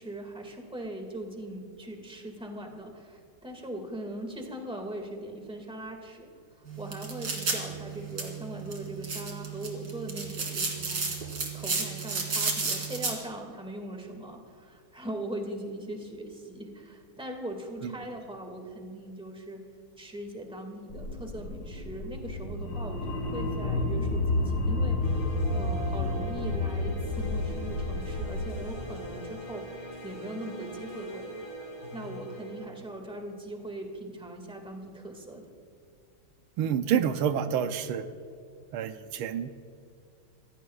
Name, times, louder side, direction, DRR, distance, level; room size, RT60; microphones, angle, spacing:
voice 1, 0.0-11.0 11.5-19.6 20.0-31.5 31.9-35.4, right 1 dB, 5° right, 2 dB, 1.7 m, -40 dB
sound 1, 6.7-13.1, right 4 dB, 55° right, 2.8 m, -33 dB
sound 2, 20.9-28.7, left 2 dB, 60° left, 3.3 m, -30 dB
sound 3, 25.0-32.7, right 1 dB, 40° left, 3.6 m, -40 dB
voice 2, 36.6-38.1 38.7-39.7, right 8 dB, 85° right, 9 dB, 1.6 m, -28 dB
27.0 x 15.5 x 2.4 m, 2.3 s
omnidirectional pair, 2.3 m